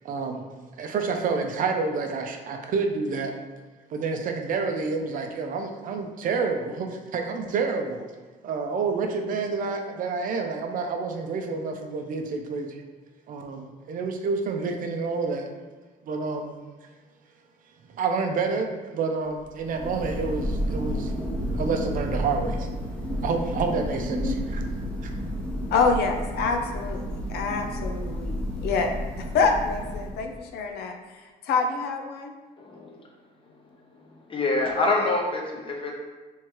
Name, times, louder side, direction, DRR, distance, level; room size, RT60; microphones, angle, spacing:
voice 1, 0.0-0.5 0.8-3.4 3.9-8.1 8.4-12.8 13.3-15.5 16.1-16.5 17.9-21.1 21.5-22.7 23.1-24.7 25.0-25.1, right 4 dB, 55° right, 4 dB, 0.6 m, -28 dB
Thunder, 19.4-30.5, equal, 5° left, 0.9 m, -31 dB
voice 2, 25.7-30.9 31.4-32.3, left 4 dB, 75° left, 4 dB, 0.5 m, -26 dB
voice 3, 32.6-32.9 34.0-35.9, left 2 dB, 30° left, 0 dB, 1.0 m, -26 dB
3.6 x 3.0 x 4.6 m, 1.2 s
cardioid pair, 110°, 17 cm